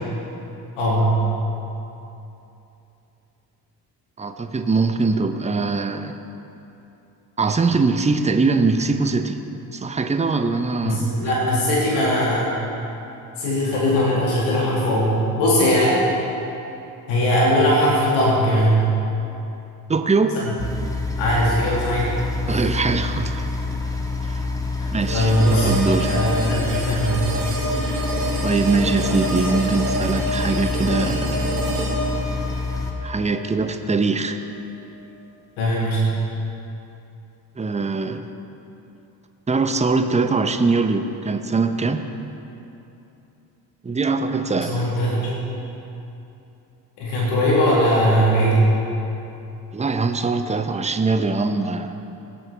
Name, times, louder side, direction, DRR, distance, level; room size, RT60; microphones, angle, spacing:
voice 1, 0.8-1.2 10.8-12.5 13.4-16.0 17.1-18.8 20.3-20.5 21.2-22.1 22.4-22.6 24.8-25.7 26.1-27.1 35.6-36.1 44.5-45.2 47.0-48.8, equal, 70° left, -5 dB, 2.3 m, -20 dB
voice 2, 4.2-6.2 7.4-9.4 9.7-11.3 19.9-20.4 22.5-23.5 24.2-24.4 24.9-26.2 28.4-31.5 33.0-34.4 37.6-38.3 39.5-42.0 43.8-44.9 49.7-51.9, right 4 dB, 15° right, 8 dB, 0.8 m, -22 dB
sound 1, 20.6-32.9, left 3 dB, 5° left, 1.6 m, -27 dB
sound 2, 25.0-34.0, right 1 dB, 80° right, 2.3 m, -27 dB
18.0 x 8.7 x 3.4 m, 2.9 s
hypercardioid pair, 45°, 49 cm